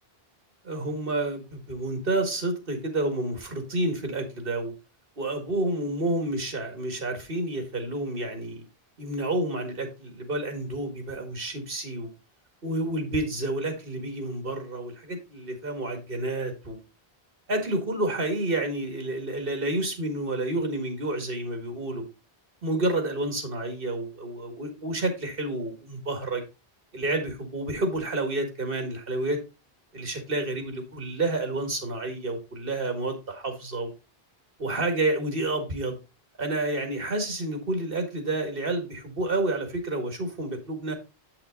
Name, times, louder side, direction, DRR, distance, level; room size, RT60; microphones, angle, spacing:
voice 1, 0.6-4.7 5.2-8.6 9.0-12.1 12.6-16.8 17.5-22.0 22.6-26.4 26.9-29.4 29.9-33.9 34.6-36.0 36.4-40.9, right 2 dB, 60° right, 5 dB, 2.1 m, -29 dB
8.3 x 5.9 x 3.8 m, 0.28 s
omnidirectional pair, 1.0 m